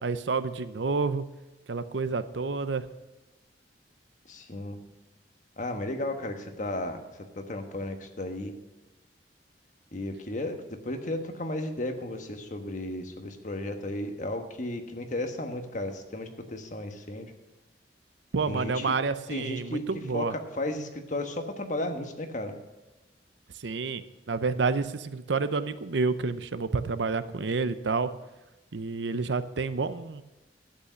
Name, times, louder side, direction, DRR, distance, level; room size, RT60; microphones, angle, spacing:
voice 1, 0.0-1.2 1.7-2.9 18.3-20.3 23.6-28.1 28.7-30.2, right 4 dB, 85° right, 13 dB, 0.7 m, -29 dB
voice 2, 4.3-4.8 5.6-7.0 7.3-8.5 9.9-10.6 10.8-17.3 18.4-19.0 19.3-19.8 20.1-22.5, left 1 dB, 45° left, 5 dB, 1.3 m, -34 dB
11.5 x 8.3 x 6.2 m, 1.1 s
head